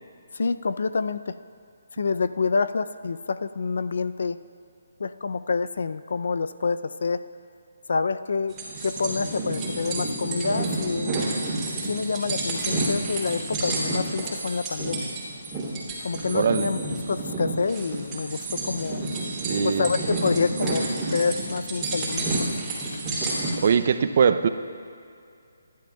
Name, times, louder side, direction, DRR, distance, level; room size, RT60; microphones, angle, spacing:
voice 1, 0.3-1.4 2.0-4.4 5.0-7.2 7.9-11.2 11.9-15.1 16.0-16.8 17.1-19.0 19.6-22.5, left 4 dB, 65° left, 13 dB, 0.4 m, -27 dB
sound 1, 8.5-23.6, right 2 dB, 10° right, 3.1 m, -30 dB
voice 2, 16.3-16.7 19.4-19.9 23.6-24.5, right 6 dB, 45° right, 10 dB, 0.5 m, -21 dB
23.0 x 11.5 x 2.3 m, 2.4 s
hypercardioid pair, 160°, 0 cm